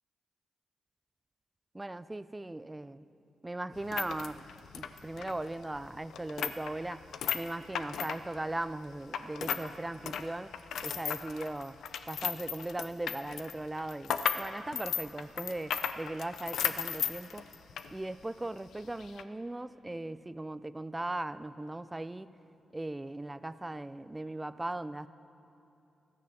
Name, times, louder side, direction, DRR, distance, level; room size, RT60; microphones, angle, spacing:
voice 1, 1.7-3.1 3.4-4.4 4.8-7.0 7.3-10.5 10.8-11.8 12.1-17.4 17.9-22.3 22.7-25.1, right 2 dB, 20° right, 15 dB, 0.5 m, -38 dB
sound 1, 3.7-9.7 10.0-17.9 18.2-18.3 19.0-19.2, left 8 dB, 75° left, 0.5 m, -36 dB
13.5 x 9.6 x 6.9 m, 2.8 s
supercardioid pair, 45°, 0 cm